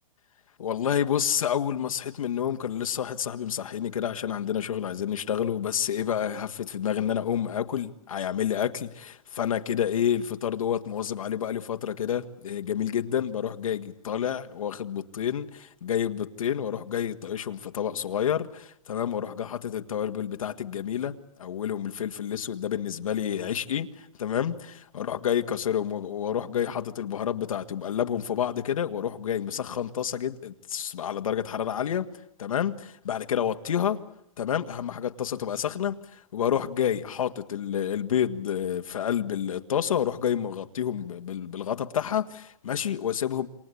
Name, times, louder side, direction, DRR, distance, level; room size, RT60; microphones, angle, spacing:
voice 1, 0.6-32.1 32.4-34.0 34.4-43.5, left 9 dB, 70° left, 1.7 m, -29 dB
27.5 x 25.5 x 8.5 m
hypercardioid pair, 180°, 18 cm